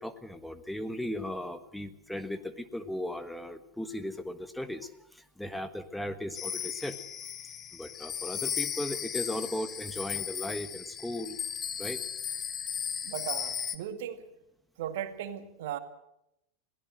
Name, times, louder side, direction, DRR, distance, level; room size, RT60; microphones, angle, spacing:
voice 1, 0.0-7.0 7.7-11.4 11.8-12.0, left 1 dB, 5° left, 10 dB, 1.4 m, -37 dB
sound 1, 6.3-13.8, left 9 dB, 30° left, 1.4 m, -36 dB
voice 2, 13.0-14.2 14.8-15.8, right 10 dB, 65° right, 9 dB, 2.0 m, -37 dB
22.0 x 16.5 x 7.7 m, 0.83 s
hypercardioid pair, 95°, 0 cm